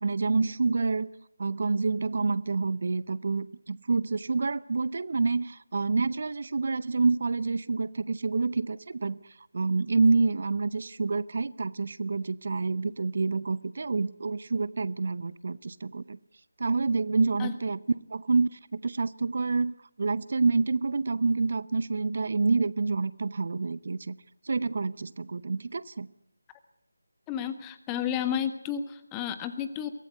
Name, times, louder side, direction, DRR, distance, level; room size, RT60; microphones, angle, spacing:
voice 1, 0.0-1.1 1.4-9.2 9.5-16.2 16.6-17.8 18.1-24.1 24.4-26.1, right 4 dB, 50° right, 19 dB, 0.7 m, -28 dB
voice 2, 27.3-29.9, left 9 dB, 10° left, 10 dB, 1.3 m, -32 dB
23.5 x 16.5 x 8.0 m, 0.83 s
figure-of-eight pair, 160°, 0 cm